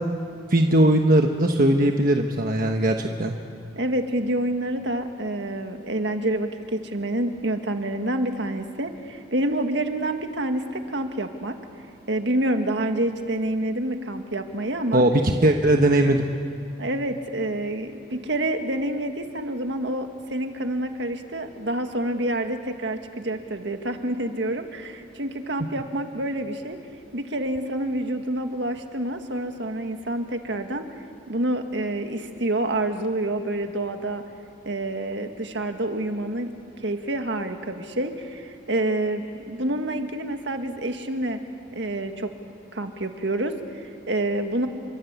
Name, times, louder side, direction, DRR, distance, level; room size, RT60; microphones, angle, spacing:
voice 1, 0.5-3.3 14.9-16.3, right 1 dB, 45° right, 3 dB, 1.3 m, -19 dB
voice 2, 3.7-11.6 12.1-15.0 16.8-26.8 27.1-30.9 31.3-34.2 34.6-36.5 36.8-41.4 41.7-42.3 42.7-44.7, right 1 dB, 60° right, 6 dB, 1.8 m, -28 dB
29.5 x 23.5 x 8.3 m, 2.5 s
head